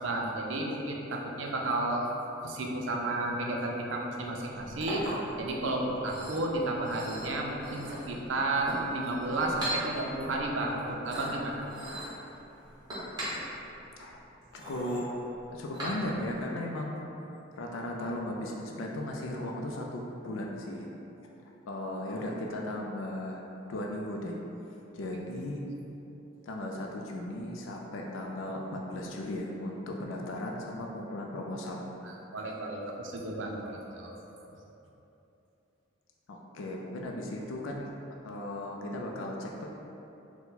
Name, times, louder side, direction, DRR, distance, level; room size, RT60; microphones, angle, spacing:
voice 1, 0.0-2.0 2.4-5.1 5.4-11.6 32.0-34.1, right 2 dB, 70° right, 0 dB, 0.5 m, -32 dB
Chink clink, 4.4-16.4, equal, 20° right, 1.0 m, -40 dB
voice 2, 14.5-15.1 15.5-17.1 17.5-20.9 21.7-23.4 23.7-24.4 24.9-25.7 26.4-31.9 36.3-37.9 38.2-39.7, left 1 dB, 75° left, 0 dB, 0.4 m, -36 dB
4.3 x 2.2 x 3.9 m, 3.0 s
head